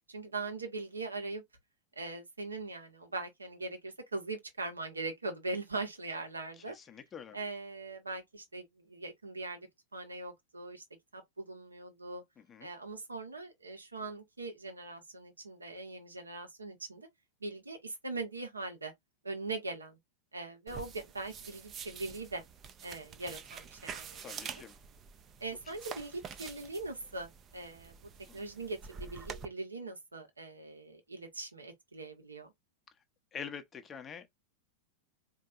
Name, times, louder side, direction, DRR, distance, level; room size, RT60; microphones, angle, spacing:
voice 1, 0.1-1.4 2.0-6.7 7.3-9.7 9.9-10.8 11.1-12.2 12.6-17.1 17.4-18.9 19.2-20.0 20.3-22.4 22.8-24.5 25.4-27.9 28.3-32.5, right 3 dB, 80° right, 1.3 m, -41 dB
voice 2, 6.6-7.4 12.4-12.7 24.2-24.8 25.7-25.8 28.3-28.4 33.3-34.3, left 7 dB, 20° left, 0.8 m, -46 dB
sound 1, 20.7-29.4, right 6 dB, 30° right, 0.6 m, -47 dB
4.4 x 2.9 x 2.5 m
figure-of-eight pair, 90°, 0 cm